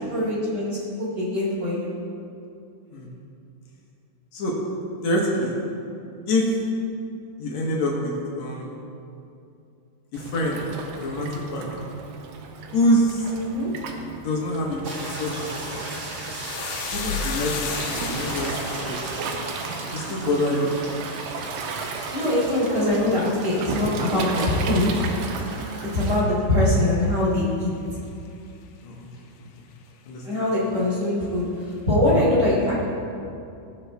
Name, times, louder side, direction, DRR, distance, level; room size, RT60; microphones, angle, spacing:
voice 1, 0.0-1.9 13.3-13.7 22.1-24.9 25.8-27.7 30.2-32.8, left 1 dB, 20° right, -6 dB, 2.4 m, -23 dB
voice 2, 5.0-5.6 6.3-6.6 7.4-8.8 10.1-10.7 11.0-11.9 12.7-13.3 14.2-15.8 16.9-18.5 18.8-19.2 19.8-20.7 28.8-29.1 29.4-29.5 30.1-30.2, left 1 dB, 70° left, -3 dB, 1.7 m, -26 dB
Waves surf, 10.1-26.2, right 4 dB, 85° right, 2.9 m, -34 dB
sound 1, 14.8-26.2, equal, 50° right, 1.6 m, -36 dB
sound 2, 16.3-24.9 25.2-25.8 26.1-26.4, left 7 dB, 85° left, 3.1 m, -37 dB
18.5 x 7.0 x 3.4 m, 2.6 s
omnidirectional pair, 5.0 m